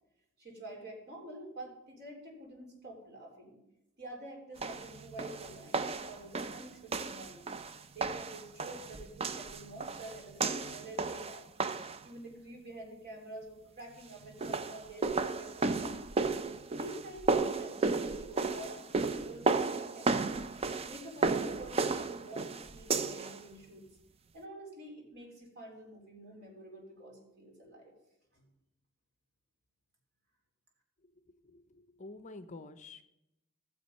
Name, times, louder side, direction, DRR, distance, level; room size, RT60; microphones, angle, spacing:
voice 1, 0.4-3.6 4.0-7.5 7.9-11.5 12.0-15.9 16.7-20.4 20.9-23.9 24.3-27.9 28.3-28.5, right 1 dB, 50° right, 0 dB, 3.5 m, -48 dB
sound 1, 4.6-12.1 14.2-23.4, right 3 dB, 30° right, 0.5 m, -33 dB
voice 2, 31.0-33.0, left 2 dB, 35° left, 11 dB, 0.6 m, -50 dB
16.0 x 7.4 x 5.4 m, 0.91 s
head